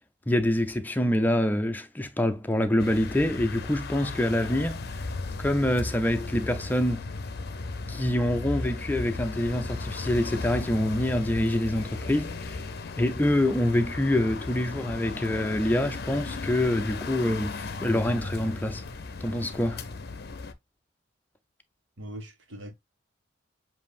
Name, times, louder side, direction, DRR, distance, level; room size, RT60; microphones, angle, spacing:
voice 1, 0.3-5.0 5.4-7.1 7.9-12.6 13.0-18.8 19.2-19.8, left 1 dB, 10° left, 0.5 m, -26 dB
sound 1, 2.8-20.5, left 3 dB, 55° left, 0.6 m, -36 dB
voice 2, 19.3-19.8 22.0-22.7, right 1 dB, 75° right, 1.4 m, -42 dB
7.3 x 2.7 x 2.4 m
head